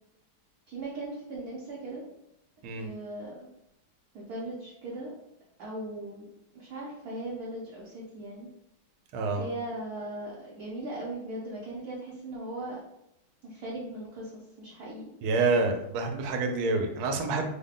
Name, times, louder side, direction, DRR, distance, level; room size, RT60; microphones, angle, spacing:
voice 1, 0.7-2.0 2.8-3.5 4.1-5.1 5.6-6.3 6.5-8.5 9.4-12.8 13.4-15.1, right 1 dB, 65° right, -5 dB, 1.0 m, -38 dB
voice 2, 9.1-9.5 15.2-17.4, right 3 dB, 90° right, 4 dB, 1.5 m, -27 dB
3.7 x 2.1 x 3.6 m, 0.82 s
omnidirectional pair, 2.2 m